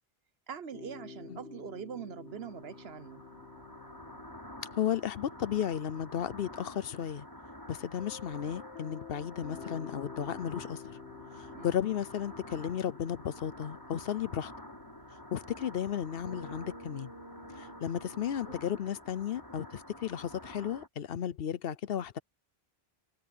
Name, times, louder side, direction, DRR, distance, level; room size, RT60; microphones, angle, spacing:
voice 1, 0.5-3.2 11.5-11.8, right 7 dB, 70° right, 1.2 m, -43 dB
sound 1, 0.7-18.5, left 4 dB, 85° left, 2.2 m, -51 dB
sound 2, 2.3-20.9, left 1 dB, 20° left, 6.7 m, -49 dB
voice 2, 4.7-7.2 7.7-11.0 11.6-14.5 15.3-17.1 17.6-22.2, left 9 dB, 65° left, 0.9 m, -34 dB
omnidirectional pair, 1.1 m